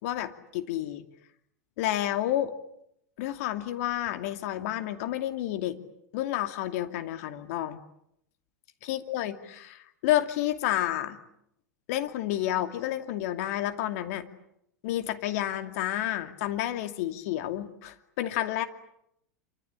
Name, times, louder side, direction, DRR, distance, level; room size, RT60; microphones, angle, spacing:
voice 1, 0.0-1.0 1.8-2.5 3.2-5.8 6.1-7.8 8.8-11.2 11.9-14.2 14.8-18.6, left 13 dB, 60° left, 8 dB, 2.5 m, -30 dB
27.0 x 25.0 x 8.7 m, 0.75 s
figure-of-eight pair, 90°, 9 cm